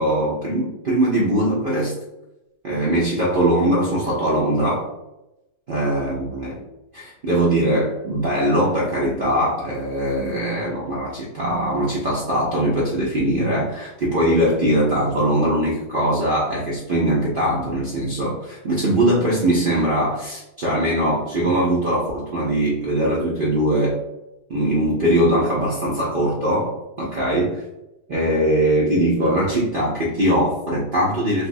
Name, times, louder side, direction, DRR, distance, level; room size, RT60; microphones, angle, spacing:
voice 1, 0.0-1.9 2.6-4.9 5.7-6.6 6.9-24.0 24.5-27.6 28.1-31.5, right 1 dB, 60° right, -6 dB, 0.5 m, -21 dB
3.3 x 2.9 x 2.6 m, 0.94 s
omnidirectional pair, 1.7 m